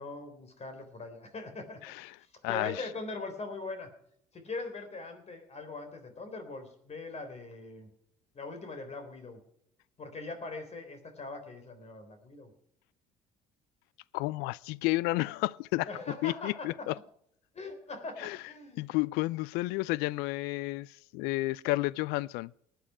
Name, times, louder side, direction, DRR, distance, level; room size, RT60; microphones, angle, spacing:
voice 1, 0.0-1.8 2.2-3.9 4.3-7.9 8.3-9.4 10.0-12.5 15.9-16.9 17.5-19.0, left 3 dB, 40° left, 3.8 m, -41 dB
voice 2, 1.8-2.2 2.4-2.8 14.1-15.9 16.2-16.9 18.2-18.4 18.8-22.5, left 20 dB, 70° left, 0.4 m, -31 dB
19.5 x 9.2 x 4.9 m
hypercardioid pair, 60°, 17 cm